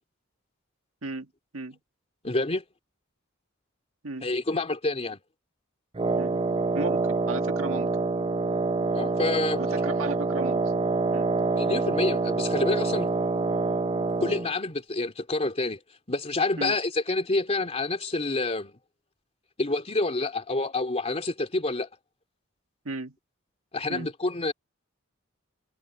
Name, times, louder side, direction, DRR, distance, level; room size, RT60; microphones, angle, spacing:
voice 1, 1.0-1.8 4.0-4.3 6.2-6.4 6.7-7.9 9.5-10.6 11.1-11.3 16.6-16.8 22.8-23.1 23.9-24.1, right 3 dB, 85° right, 1.8 m, -35 dB
voice 2, 2.2-2.6 4.2-5.2 8.9-9.6 11.6-13.1 14.2-15.8 16.1-18.7 19.6-21.9 23.7-24.5, left 2 dB, 30° left, 2.9 m, -28 dB
Wind instrument woodwind instrument, 5.9-14.5, right 3 dB, 25° right, 0.5 m, -26 dB
head